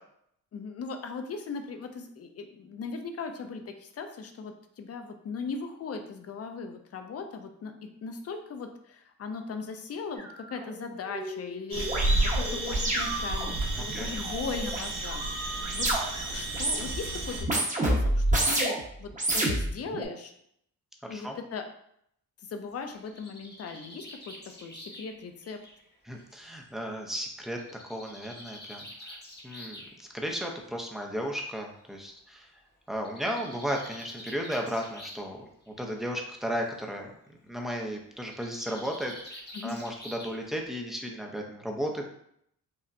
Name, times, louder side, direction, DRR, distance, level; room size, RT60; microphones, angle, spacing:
voice 1, 0.5-15.9 16.3-18.7 19.0-20.3 21.1-21.6 22.4-25.6 39.5-39.8, left 4 dB, 50° left, 6 dB, 0.5 m, -39 dB
sound 1, 10.2-10.3 10.6-16.2 16.5-17.0 17.4-18.8 19.1-20.0, right 1 dB, 25° right, 1.0 m, -30 dB
sound 2, 11.7-17.4, right 2 dB, 60° right, 0.9 m, -31 dB
voice 2, 13.8-14.2 21.0-21.4 26.1-27.6 27.9-29.2 29.4-32.5 32.9-37.1 37.5-42.1, equal, ahead, 1 dB, 0.5 m, -35 dB
Bird, 22.7-26.5 27.6-29.9 31.0-31.1 31.5-31.6 31.8-31.9 32.9-35.3 35.6-36.1 38.2-40.6, left 1 dB, 30° left, 0.9 m, -47 dB
5.4 x 2.1 x 2.5 m, 0.71 s
cardioid pair, 115°, 32 cm